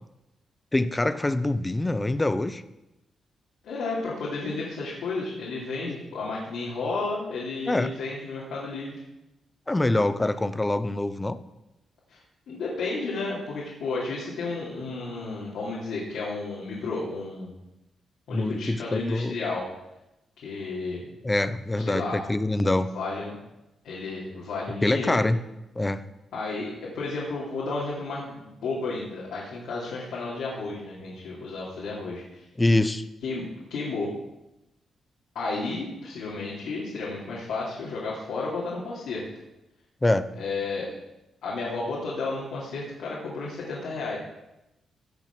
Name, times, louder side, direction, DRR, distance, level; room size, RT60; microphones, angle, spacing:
voice 1, 0.7-2.6 5.9-6.0 7.7-7.9 9.7-11.4 18.3-19.3 21.2-22.9 24.8-25.4 25.8-26.0 32.6-33.0 40.0-40.3, left 2 dB, 15° left, 13 dB, 0.5 m, -24 dB
voice 2, 3.6-9.0 12.1-12.2 12.5-17.5 18.3-19.7 20.4-21.1 21.8-22.3 22.9-23.4 23.8-25.2 26.3-32.5 33.2-34.1 35.3-39.3 40.4-40.9 41.4-44.2, left 3 dB, 90° left, -6 dB, 2.8 m, -32 dB
16.0 x 6.1 x 5.9 m, 0.95 s
wide cardioid pair, 145°, 0 cm